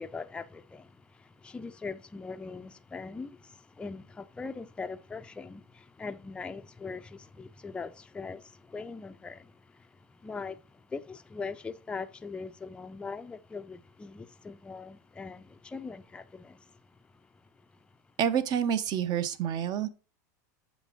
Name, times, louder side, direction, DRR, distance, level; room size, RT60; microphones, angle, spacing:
voice 1, 0.0-9.8 10.1-16.6, left 4 dB, 10° left, 0.4 m, -41 dB
voice 2, 18.2-19.9, right 8 dB, 45° right, 0.8 m, -28 dB
8.0 x 5.2 x 3.6 m
supercardioid pair, 115°, 10 cm